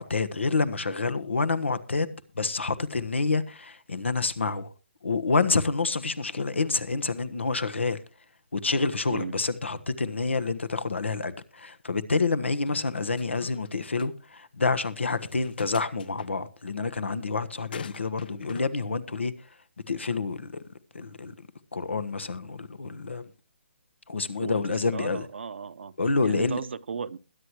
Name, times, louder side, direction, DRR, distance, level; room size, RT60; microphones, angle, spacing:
voice 1, 0.0-4.7 5.0-8.0 8.5-19.3 19.9-20.6 20.9-21.3 21.7-23.3 24.1-25.3 26.0-26.6, left 3 dB, 85° left, 1.3 m, -28 dB
sound 1, 12.7-13.7 14.0-14.1 15.2-16.3 17.7-18.7, left 7 dB, 55° left, 0.9 m, -44 dB
voice 2, 24.4-25.9 26.2-27.2, right 6 dB, 70° right, 0.8 m, -36 dB
21.5 x 10.0 x 3.0 m
figure-of-eight pair, 140°, 6 cm